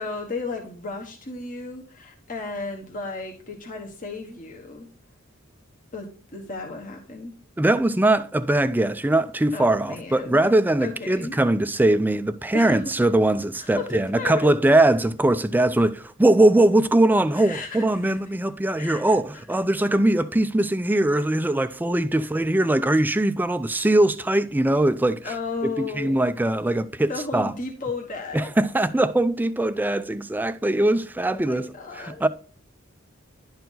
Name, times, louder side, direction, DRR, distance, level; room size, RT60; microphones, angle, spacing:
voice 1, 0.0-4.9 5.9-7.3 9.5-11.4 12.5-12.9 13.6-14.5 17.4-18.2 18.8-19.4 25.2-26.3 27.1-28.5 31.2-32.2, left 3 dB, 40° left, 1.3 m, -34 dB
voice 2, 7.6-25.3 25.6-27.5 28.3-31.7 32.0-32.3, right 1 dB, 10° right, 0.4 m, -21 dB
11.0 x 4.6 x 3.9 m
head